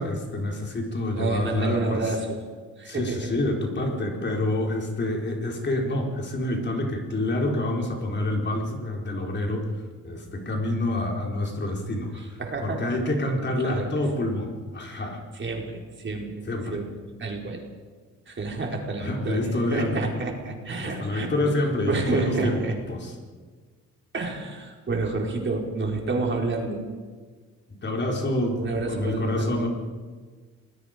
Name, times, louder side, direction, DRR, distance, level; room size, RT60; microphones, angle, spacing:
voice 1, 0.0-2.0 2.9-9.7 10.0-15.2 16.5-16.8 19.0-19.9 20.8-22.6 22.9-23.1 27.8-29.7, left 1 dB, 35° left, 1 dB, 4.4 m, -27 dB
voice 2, 1.1-2.4 2.8-3.3 12.1-13.0 13.6-13.9 15.3-16.3 16.7-16.9 17.2-17.7 18.3-21.4 21.9-22.8 24.1-26.8 28.6-29.7, right 3 dB, 40° right, 1 dB, 4.6 m, -29 dB
27.0 x 20.5 x 5.2 m, 1.5 s
cardioid pair, 90°, 30 cm